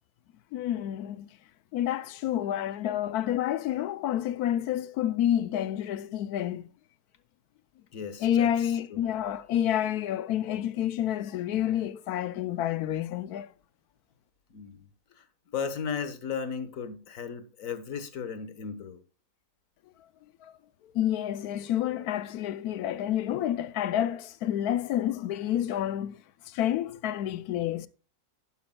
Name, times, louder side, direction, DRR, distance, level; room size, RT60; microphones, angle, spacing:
voice 1, 0.5-1.4 1.7-6.7 8.2-13.5 20.4-20.5 20.9-27.9, left 11 dB, 75° left, 1.0 m, -29 dB
voice 2, 7.9-9.0 14.5-14.8 15.2-15.3 15.5-19.0, left 6 dB, 55° left, 1.5 m, -36 dB
11.5 x 10.5 x 2.2 m
omnidirectional pair, 1.7 m